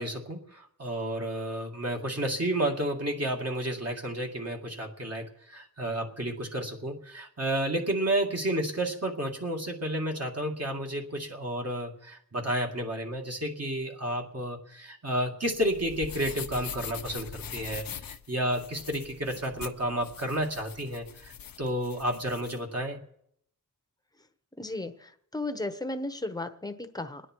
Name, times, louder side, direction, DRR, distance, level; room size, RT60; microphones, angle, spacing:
voice 1, 0.0-23.0, right 1 dB, 45° right, 1 dB, 2.2 m, -31 dB
sound 1, 15.5-22.6, left 8 dB, 80° left, 0.7 m, -42 dB
voice 2, 24.6-27.2, left 2 dB, 10° left, 8 dB, 1.0 m, -35 dB
27.0 x 9.9 x 4.6 m, 0.71 s
wide cardioid pair, 85°, 35 cm